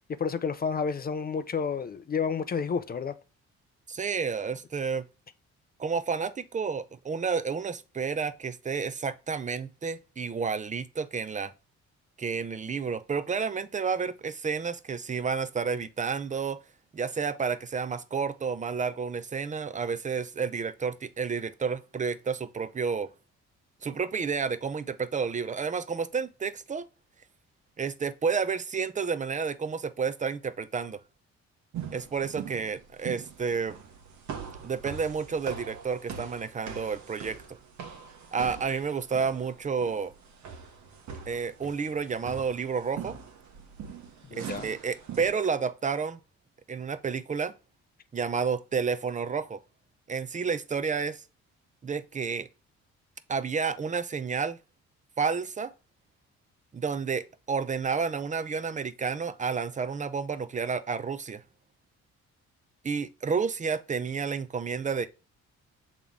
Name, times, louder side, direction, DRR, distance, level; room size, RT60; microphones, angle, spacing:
voice 1, 0.1-3.1 44.3-44.7, left 6 dB, 30° left, 0.5 m, -30 dB
voice 2, 3.9-5.0 5.8-11.5 12.2-16.6 16.9-23.1 23.8-26.9 27.8-31.0 31.9-33.8 34.6-37.6 38.3-40.1 41.3-43.2 44.3-46.2 46.7-47.5 48.1-49.6 50.1-51.2 51.8-52.5 53.3-54.6 55.2-55.7 56.7-61.4 62.8-65.1, right 5 dB, 25° right, 0.6 m, -30 dB
sound 1, 31.7-45.3, right 7 dB, 70° right, 1.2 m, -42 dB
7.2 x 3.7 x 3.6 m
cardioid pair, 90°, 30 cm